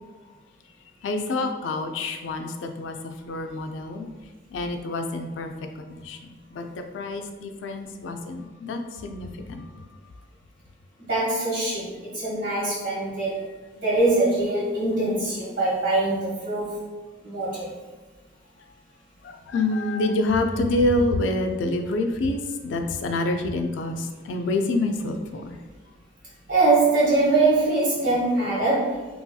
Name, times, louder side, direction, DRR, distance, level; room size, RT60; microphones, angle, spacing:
voice 1, 1.0-3.0 3.2-4.1 4.5-5.5 5.8-6.6 6.9-9.6 19.2-25.6, left 2 dB, 80° left, 6 dB, 0.3 m, -27 dB
voice 2, 11.0-13.5 13.7-16.8 17.2-17.7 26.5-29.1, right 2 dB, 85° right, -7 dB, 1.4 m, -23 dB
2.9 x 2.7 x 2.2 m, 1.3 s
head